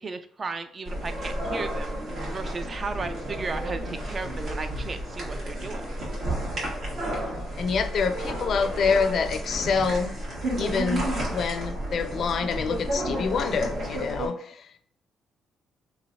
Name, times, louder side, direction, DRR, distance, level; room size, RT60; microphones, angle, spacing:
voice 1, 0.0-1.9 2.3-5.9, right 4 dB, 35° right, 0.3 m, -35 dB
sound 1, 0.8-14.3, right 1 dB, 65° right, 1.4 m, -31 dB
voice 2, 7.6-10.1 10.6-14.8, left 5 dB, 60° left, 0.4 m, -27 dB
3.1 x 2.7 x 2.6 m
cardioid pair, 90°, 0 cm